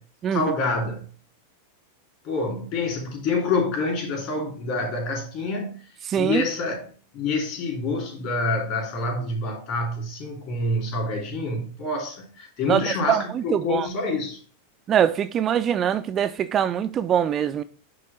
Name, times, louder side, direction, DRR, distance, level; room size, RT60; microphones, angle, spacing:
voice 1, 0.3-1.0 2.2-5.8 6.2-6.9 7.1-14.4, left 3 dB, 45° left, 2.7 m, -27 dB
voice 2, 6.1-6.4 12.7-12.8 13.1-13.9 14.9-17.6, right 9 dB, 25° right, 0.3 m, -23 dB
9.4 x 3.2 x 4.0 m
figure-of-eight pair, 90°, 0 cm